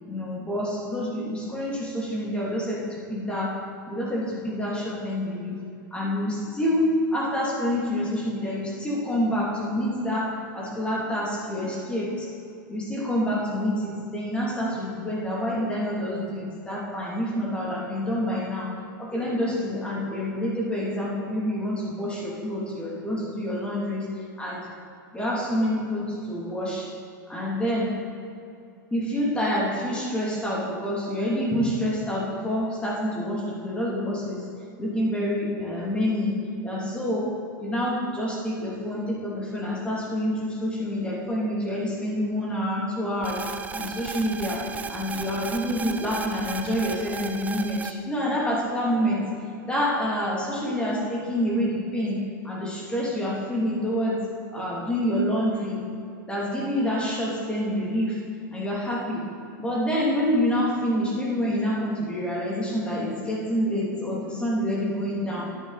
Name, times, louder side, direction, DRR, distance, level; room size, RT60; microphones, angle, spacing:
voice 1, 0.1-3.5 3.9-5.6 5.9-12.3 12.7-18.7 19.0-24.1 24.4-24.7 25.1-26.9 27.3-27.9 28.9-34.4 34.8-36.4 36.6-43.4 43.7-49.2 49.6-54.2 54.5-55.8 56.3-58.2 58.5-59.3 59.6-65.5, equal, 10° left, -5 dB, 2.6 m, -27 dB
sound 1, 43.2-47.9, right 5 dB, 15° right, 0.4 m, -35 dB
10.5 x 9.1 x 4.1 m, 2.5 s
hypercardioid pair, 130°, 11 cm